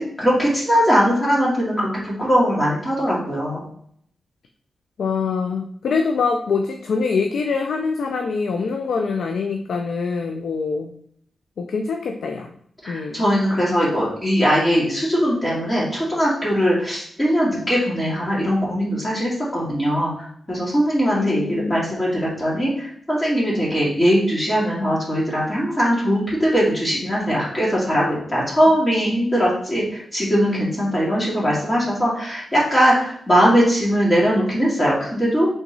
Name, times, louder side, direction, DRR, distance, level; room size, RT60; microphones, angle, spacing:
voice 1, 0.0-3.6 12.8-20.1 20.5-21.4 21.7-35.5, equal, 25° left, -7 dB, 1.8 m, -20 dB
voice 2, 5.0-10.9 11.6-12.5 12.9-13.2 21.1-22.0, left 5 dB, 80° left, 4 dB, 0.4 m, -24 dB
3.7 x 3.0 x 3.8 m, 0.65 s
cardioid pair, 65°, 0 cm